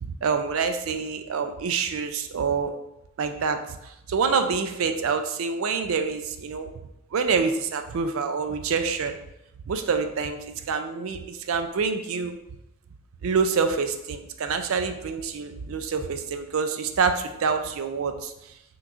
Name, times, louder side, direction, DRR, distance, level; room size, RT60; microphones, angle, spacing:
voice 1, 0.0-2.7 3.2-6.7 7.1-9.2 9.7-12.4 13.2-18.3, right 5 dB, 80° right, 7 dB, 0.4 m, -26 dB
5.9 x 3.0 x 2.5 m, 0.88 s
head